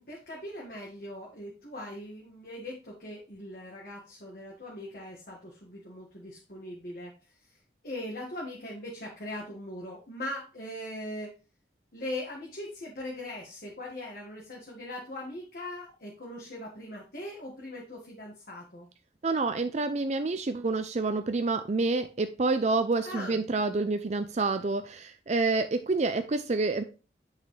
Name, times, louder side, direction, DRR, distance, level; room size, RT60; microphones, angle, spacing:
voice 1, 0.0-11.3 11.9-18.9 23.0-23.4, left 1 dB, 55° left, -3 dB, 1.8 m, -40 dB
voice 2, 19.2-26.8, right 3 dB, 40° right, 9 dB, 0.5 m, -28 dB
8.0 x 5.7 x 3.2 m, 0.33 s
head